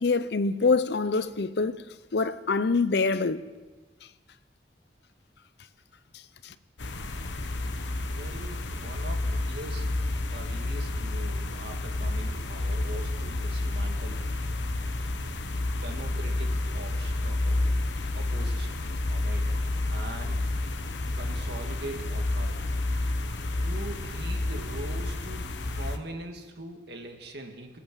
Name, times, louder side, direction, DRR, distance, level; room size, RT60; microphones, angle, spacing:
voice 1, 0.0-1.8 2.1-3.4 6.4-6.5, left 4 dB, 65° left, 0.6 m, -25 dB
sound 1, 6.8-26.0, left 2 dB, 80° left, 1.1 m, -30 dB
voice 2, 8.0-9.9 10.3-14.2 15.8-17.7 18.2-18.8 19.1-19.5 19.9-20.4 21.2-22.7 23.5-25.5 25.7-27.8, right 1 dB, 65° right, 1.8 m, -42 dB
19.5 x 8.5 x 7.5 m
head